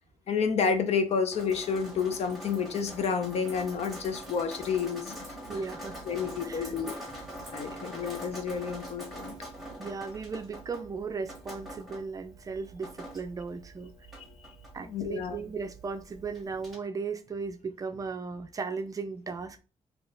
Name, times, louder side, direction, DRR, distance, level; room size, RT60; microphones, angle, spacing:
voice 1, 0.3-5.4 6.1-6.9 7.5-9.3 14.4-14.5 14.8-15.4, left 6 dB, 65° left, 0.7 m, -30 dB
Drip, 1.3-16.8, right 1 dB, ahead, 1.6 m, -44 dB
voice 2, 5.5-6.0 6.4-6.7 7.7-7.8 9.8-13.9 14.7-19.6, right 4 dB, 30° right, 0.4 m, -36 dB
4.0 x 2.9 x 3.8 m
wide cardioid pair, 160°, 12 cm